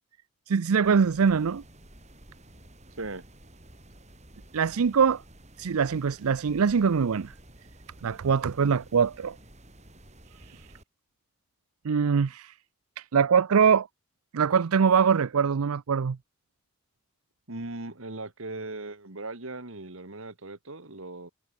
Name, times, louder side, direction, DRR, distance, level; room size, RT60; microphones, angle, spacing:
voice 1, 0.5-1.6 4.5-5.2 5.6-7.3 8.0-9.4 10.4-10.7 11.8-12.5 13.0-13.9 14.3-16.2, right 6 dB, 80° right, 0.5 m, -23 dB
sound 1, 0.8-10.8, right 1 dB, 30° right, 7.4 m, -52 dB
voice 2, 17.5-21.3, right 2 dB, 65° right, 2.1 m, -38 dB
head